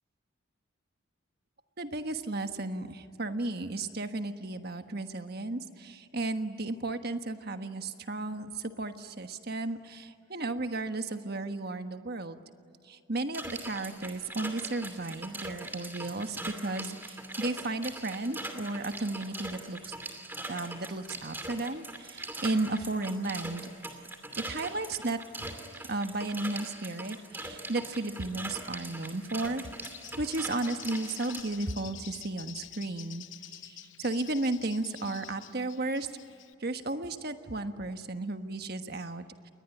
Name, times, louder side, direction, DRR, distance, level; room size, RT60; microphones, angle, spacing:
voice 1, 1.8-12.4 12.9-20.0 20.5-24.0 24.4-25.5 25.9-29.7 30.1-33.2 33.6-36.1 36.6-39.5, right 2 dB, 50° right, 8 dB, 1.3 m, -34 dB
sound 1, 13.3-31.4, right 2 dB, 10° right, 2.6 m, -42 dB
Bird, 29.6-36.5, left 12 dB, 60° left, 0.8 m, -48 dB
30.0 x 22.0 x 9.2 m, 2.7 s
head